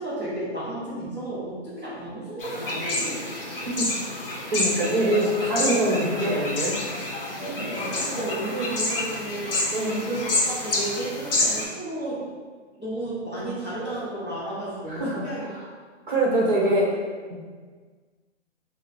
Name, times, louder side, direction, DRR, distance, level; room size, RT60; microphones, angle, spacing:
voice 1, 0.0-3.2 7.7-12.2 12.8-15.5, right 1 dB, 10° right, -16 dB, 0.8 m, -32 dB
sound 1, 2.4-11.6, left 2 dB, 50° left, 0.9 m, -28 dB
sound 2, 2.6-4.3 4.7-6.4 6.7-8.2 9.0-9.7, right 1 dB, 65° left, 1.3 m, -41 dB
voice 2, 4.5-6.8 9.7-10.0 14.9-15.6 16.1-17.0 17.3-17.4, right 1 dB, 40° right, -4 dB, 1.1 m, -24 dB
2.9 x 2.9 x 4.2 m, 1.5 s
hypercardioid pair, 175°, 37 cm